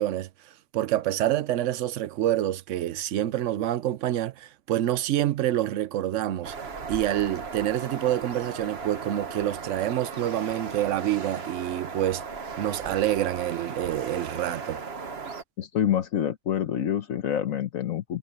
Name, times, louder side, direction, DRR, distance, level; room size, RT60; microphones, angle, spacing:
voice 1, 0.0-6.6 6.9-12.2 12.6-14.8, right 13 dB, 65° right, 1.0 m, -27 dB
sound 1, 6.4-15.4, right 5 dB, 50° right, 1.6 m, -37 dB
voice 2, 15.6-18.2, left 9 dB, 80° left, 1.4 m, -27 dB
omnidirectional pair, 1.4 m